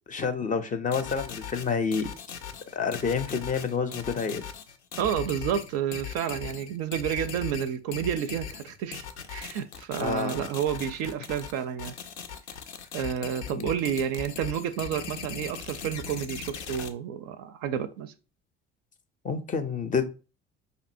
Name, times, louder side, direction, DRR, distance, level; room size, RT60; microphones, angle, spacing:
voice 1, 0.1-2.1 2.7-4.4 10.0-10.5 13.5-13.7 19.2-20.1, left 5 dB, 25° left, 0.5 m, -29 dB
sound 1, 0.9-16.9, left 7 dB, 80° left, 0.5 m, -39 dB
voice 2, 5.0-9.0 9.3-11.9 12.9-18.1, right 9 dB, 45° right, 0.4 m, -30 dB
5.1 x 2.6 x 2.5 m
figure-of-eight pair, 55°, 33 cm